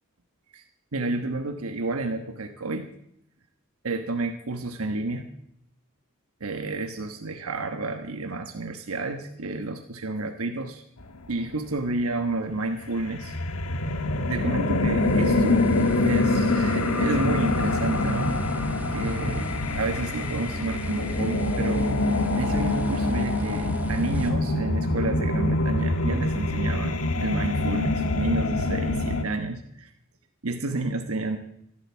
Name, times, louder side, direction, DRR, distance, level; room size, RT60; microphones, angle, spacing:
voice 1, 0.9-2.9 3.8-5.3 6.4-10.8 11.3-13.4 14.2-15.7 16.0-19.5 19.7-21.9 22.3-29.9 30.4-31.4, right 2 dB, 85° right, 5 dB, 1.2 m, -30 dB
sound 1, 12.9-29.2, left 2 dB, 85° left, 1.4 m, -25 dB
sound 2, 14.9-24.3, equal, 10° right, 1.6 m, -40 dB
15.0 x 12.0 x 7.2 m, 0.77 s
head